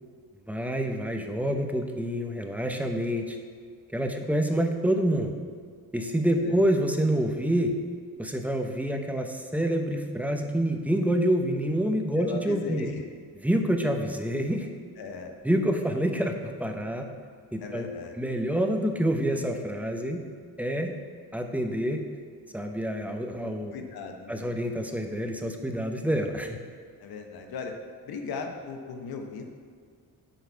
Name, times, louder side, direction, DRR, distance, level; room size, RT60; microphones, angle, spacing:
voice 1, 0.5-3.4 3.9-5.3 5.9-7.7 8.2-12.9 13.4-14.7 15.4-17.1 17.5-17.9 18.2-20.2 20.6-20.9 21.3-22.0 22.5-23.7 24.3-26.6, right 1 dB, 5° right, 4 dB, 0.8 m, -27 dB
voice 2, 12.2-13.0 15.0-15.3 17.6-18.2 23.7-24.4 27.0-27.7 28.0-29.5, left 4 dB, 80° left, 4 dB, 1.0 m, -37 dB
10.5 x 4.1 x 4.6 m, 2.1 s
cardioid pair, 85°, 36 cm